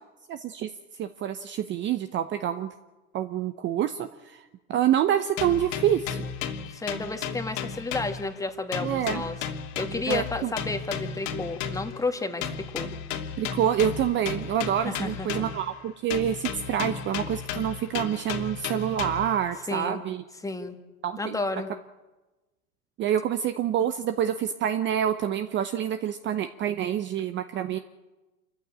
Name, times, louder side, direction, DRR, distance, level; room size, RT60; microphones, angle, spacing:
voice 1, 0.3-0.7 1.0-2.7 3.1-4.4 4.7-6.3 8.8-9.2 10.1-10.5 13.4-20.2 21.0-21.4 23.0-27.8, right 10 dB, 25° right, 9 dB, 0.8 m, -27 dB
sound 1, 5.4-8.5 8.7-12.0 12.4-15.7 16.1-19.4, left 6 dB, 60° left, 2.8 m, -34 dB
voice 2, 6.7-9.4 9.8-12.9 14.8-15.5 19.7-20.0 20.4-20.8 21.2-21.7, left 3 dB, 5° left, 6 dB, 1.8 m, -32 dB
27.0 x 14.5 x 8.7 m, 1.1 s
hypercardioid pair, 110°, 44 cm